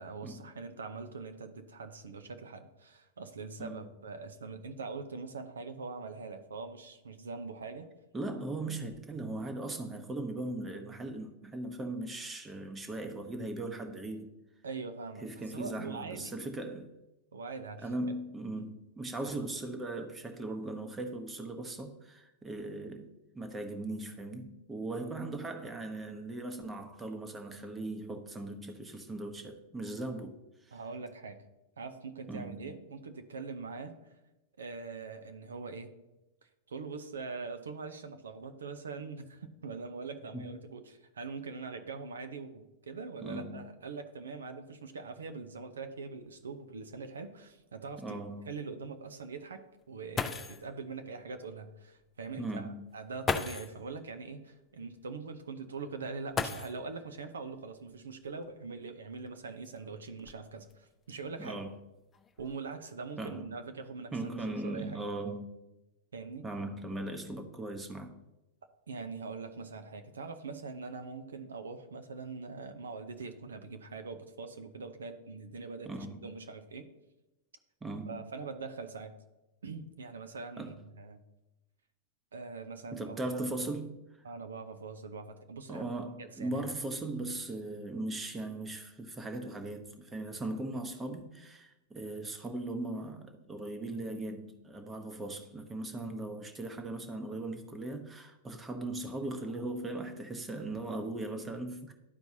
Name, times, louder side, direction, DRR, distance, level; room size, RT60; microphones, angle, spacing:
voice 1, 0.0-7.9 14.6-16.5 17.3-18.2 18.6-18.7 30.7-31.4 31.8-34.0 34.6-35.9 36.7-61.6 62.4-65.0 66.1-66.5 68.9-76.9 78.1-79.2 79.6-81.2 82.3-83.2 84.2-86.6, right 4 dB, 80° right, 0.7 m, -43 dB
voice 2, 8.1-14.3 15.2-16.9 17.8-23.1 23.3-30.8 32.3-32.7 40.3-40.5 43.2-43.6 48.0-48.5 52.4-52.8 61.4-61.7 63.2-63.5 64.1-65.5 66.4-68.2 75.9-76.3 77.8-78.2 80.6-80.7 82.9-84.2 85.7-101.9, right 2 dB, 15° right, 1.0 m, -39 dB
sound 1, 46.3-46.4 46.7-46.8 47.5-47.6 49.8-49.9 50.2-50.7 52.0-52.1 53.2-53.8 56.3-57.1 58.4-58.5 59.3-60.7 61.4-61.8 62.1-62.5, left 5 dB, 20° left, 0.6 m, -36 dB
12.0 x 4.6 x 2.8 m
hypercardioid pair, 100°, 0 cm